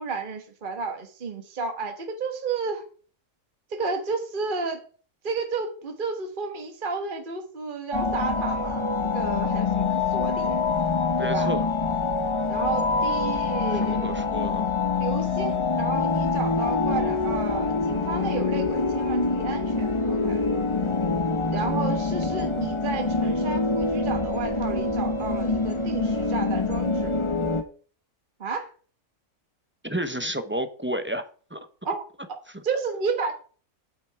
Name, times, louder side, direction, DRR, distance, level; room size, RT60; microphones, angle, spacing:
voice 1, 0.0-2.8 3.7-4.8 5.2-10.6 11.2-11.5 12.5-14.1 15.0-20.4 21.5-27.1 28.4-28.7 31.8-32.0 32.6-33.3, right 4 dB, 40° right, 1.4 m, -32 dB
sound 1, 7.9-27.6, left 4 dB, 25° left, 1.1 m, -25 dB
voice 2, 11.2-11.7 13.8-14.7 29.8-31.6, right 1 dB, 10° right, 0.7 m, -31 dB
8.7 x 8.4 x 4.7 m
omnidirectional pair, 1.5 m